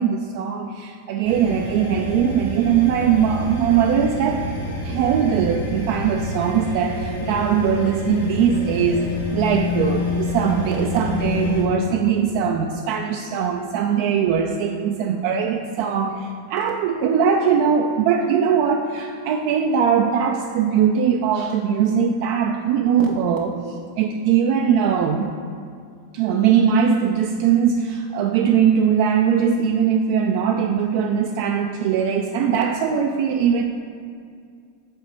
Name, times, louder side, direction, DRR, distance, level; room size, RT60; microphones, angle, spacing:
voice 1, 0.0-4.5 4.8-9.0 9.3-23.5 24.0-25.3 26.1-33.6, right 7 dB, 45° right, 3 dB, 0.3 m, -20 dB
sound 1, 1.2-11.6, left 2 dB, 75° left, 1.5 m, -28 dB
5.5 x 4.0 x 5.1 m, 2.2 s
figure-of-eight pair, 90°, 0 cm